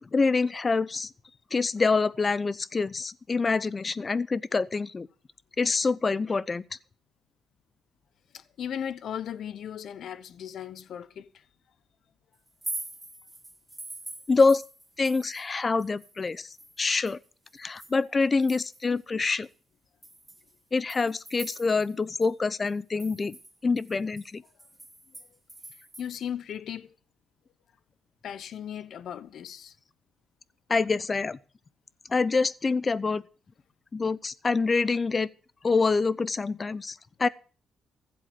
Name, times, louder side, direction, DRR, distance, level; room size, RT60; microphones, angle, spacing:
voice 1, 0.0-1.1 1.5-5.1 5.6-6.6 14.3-14.6 15.0-17.2 17.5-19.5 20.7-23.4 23.6-24.4 30.7-31.4 32.1-33.2 33.9-35.3 35.6-37.3, left 4 dB, 30° left, 0.7 m, -26 dB
voice 2, 8.3-11.4 26.0-26.9 28.2-29.7, left 9 dB, 65° left, 1.0 m, -37 dB
sound 1, 12.5-15.5 15.8-19.0 19.4-19.5 20.0-22.0 22.2-22.3 22.7-26.1, right 2 dB, 15° right, 2.4 m, -43 dB
15.5 x 7.9 x 7.8 m
cardioid pair, 95°, 0 cm